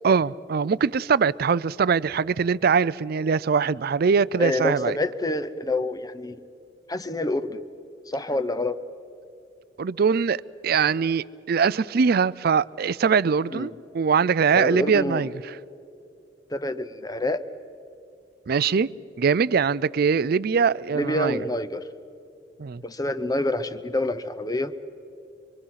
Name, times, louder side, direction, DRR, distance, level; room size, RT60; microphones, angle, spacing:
voice 1, 0.0-4.9 9.8-15.6 18.5-18.9 19.2-21.4 22.6-22.8, right 6 dB, 55° right, 0.4 m, -22 dB
voice 2, 4.4-6.4 6.9-7.6 8.1-8.8 13.5-13.8 14.5-15.3 16.5-17.4 20.9-21.8 22.8-24.8, left 1 dB, 20° left, 0.8 m, -27 dB
25.0 x 24.0 x 5.8 m
head